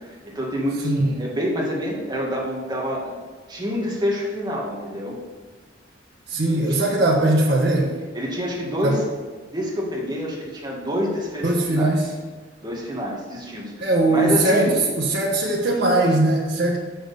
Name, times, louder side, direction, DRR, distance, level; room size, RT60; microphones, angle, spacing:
voice 1, 0.0-3.2 3.5-5.2 6.5-6.6 8.1-9.0 9.5-12.0 12.6-14.8, equal, 25° right, -3 dB, 1.9 m, -27 dB
voice 2, 0.8-1.2 6.3-7.9 8.8-8.9 11.4-12.1 13.8-16.8, right 2 dB, 65° right, -4 dB, 1.3 m, -20 dB
6.5 x 6.2 x 7.0 m, 1.4 s
head